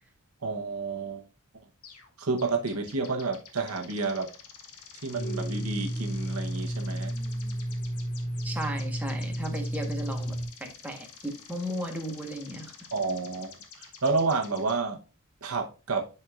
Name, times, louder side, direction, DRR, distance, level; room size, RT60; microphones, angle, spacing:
voice 1, 0.4-1.2 2.2-4.3 5.0-7.1 12.9-15.0 15.4-16.0, right 4 dB, 80° right, 3 dB, 1.0 m, -30 dB
sound 1, 1.8-2.1 2.4-14.7, left 6 dB, 85° left, 1.3 m, -49 dB
Domestic sounds home sounds, 5.1-10.5, right 1 dB, 20° left, 2.8 m, -32 dB
voice 2, 8.4-12.7, equal, 5° right, 1 dB, 1.2 m, -35 dB
11.0 x 4.3 x 2.4 m, 0.34 s
head